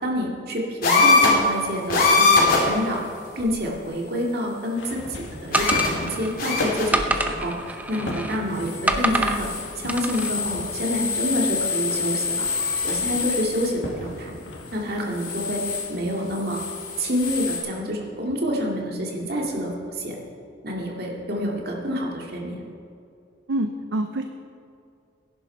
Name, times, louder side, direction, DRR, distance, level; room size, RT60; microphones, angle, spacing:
voice 1, 0.0-3.0 3.4-9.5 9.8-12.5 12.8-14.3 14.7-15.6 15.9-16.6 17.0-20.2 20.6-22.6, equal, 55° right, 0 dB, 2.3 m, -28 dB
sound 1, 0.8-1.5 1.9-2.8 3.4-3.5 5.5-6.1 6.4-7.0 8.5-8.8 9.1-13.7 15.1-15.9 16.3-17.6, left 4 dB, 50° left, 3.2 m, -23 dB
sound 2, 4.8-14.8, left 1 dB, 85° left, 1.9 m, -37 dB
sound 3, 5.5-6.3 6.9-8.4 8.9-9.4 9.9-10.3, right 1 dB, 10° right, 0.7 m, -26 dB
voice 2, 23.5-24.2, right 1 dB, 80° right, 7 dB, 0.7 m, -26 dB
17.0 x 10.5 x 4.5 m, 2.5 s
head